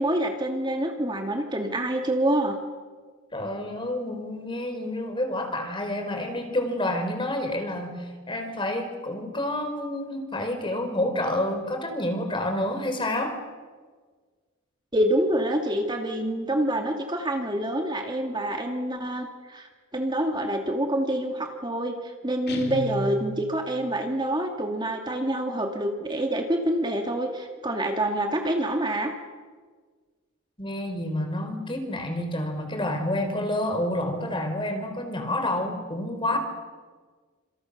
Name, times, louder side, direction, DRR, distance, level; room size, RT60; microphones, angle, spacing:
voice 1, 0.0-2.6 14.9-29.1, right 1 dB, 20° right, 3 dB, 2.3 m, -27 dB
voice 2, 3.3-13.4 30.6-36.4, left 1 dB, 25° left, 6 dB, 4.3 m, -29 dB
Guitar, 22.5-23.7, left 1 dB, 50° left, 3.4 m, -33 dB
30.0 x 27.0 x 6.6 m, 1.5 s
head